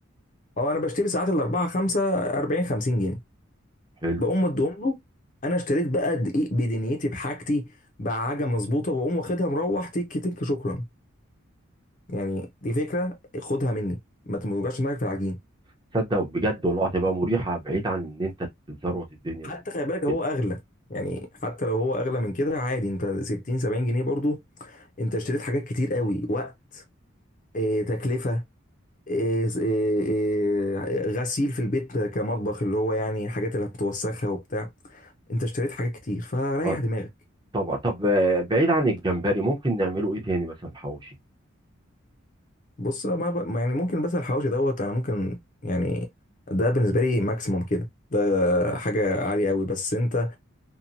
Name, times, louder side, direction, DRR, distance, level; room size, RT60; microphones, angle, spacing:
voice 1, 0.6-3.2 4.2-5.0 5.4-7.7 8.0-10.8 12.1-14.0 14.3-15.4 19.4-20.6 20.9-26.8 27.5-28.4 29.1-37.1 42.8-45.4 45.6-46.1 46.5-50.4, left 1 dB, 40° left, 0.6 m, -26 dB
voice 2, 15.9-18.3 18.7-19.6 20.1-20.2 36.6-36.8 37.5-41.1, right 1 dB, 20° right, 0.8 m, -25 dB
2.8 x 2.2 x 2.5 m
head